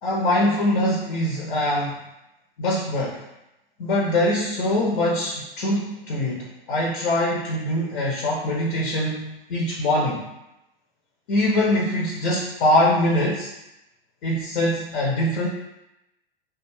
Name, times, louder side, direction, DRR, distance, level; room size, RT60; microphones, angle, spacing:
voice 1, 0.0-2.0 2.6-3.2 3.8-10.2 11.3-13.5 14.2-15.5, left 1 dB, 65° left, -2 dB, 0.6 m, -23 dB
2.3 x 2.3 x 3.2 m, 0.90 s
hypercardioid pair, 95°, 29 cm